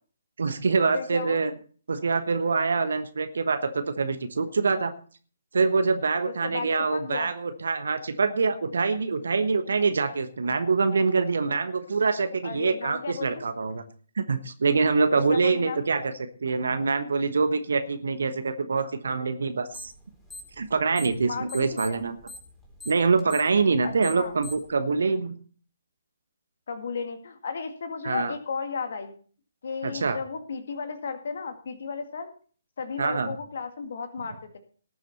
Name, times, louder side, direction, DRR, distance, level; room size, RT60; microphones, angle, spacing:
voice 1, 0.4-1.5 1.9-4.9 5.5-13.8 14.2-16.1 16.4-19.9 20.6-22.2 22.8-25.3 28.0-28.3 29.8-30.2 33.0-33.3, right 4 dB, 60° right, 9 dB, 1.2 m, -25 dB
voice 2, 0.9-1.4 6.3-7.3 12.4-13.5 15.1-15.9 21.2-22.0 23.8-24.3 26.7-29.1 29.6-32.3 32.8-34.6, left 5 dB, 55° left, 7 dB, 2.0 m, -34 dB
sound 1, 19.7-20.0 20.3-21.2 21.5-24.7, left 1 dB, 5° left, 3.9 m, -42 dB
18.5 x 7.3 x 4.2 m, 0.43 s
figure-of-eight pair, 130°, 0 cm